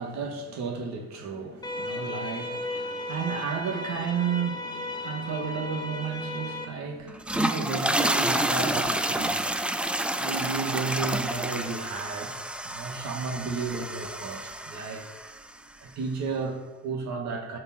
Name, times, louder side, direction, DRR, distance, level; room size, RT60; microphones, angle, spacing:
voice 1, 0.0-12.3 12.6-15.0 15.8-17.6, right 5 dB, 55° right, 2 dB, 2.0 m, -33 dB
sound 1, 1.6-6.6, left 2 dB, 10° left, 1.1 m, -35 dB
sound 2, 7.1-15.4, right 1 dB, 5° right, 0.4 m, -29 dB
14.0 x 5.4 x 4.3 m, 1.2 s
cardioid pair, 120°, 33 cm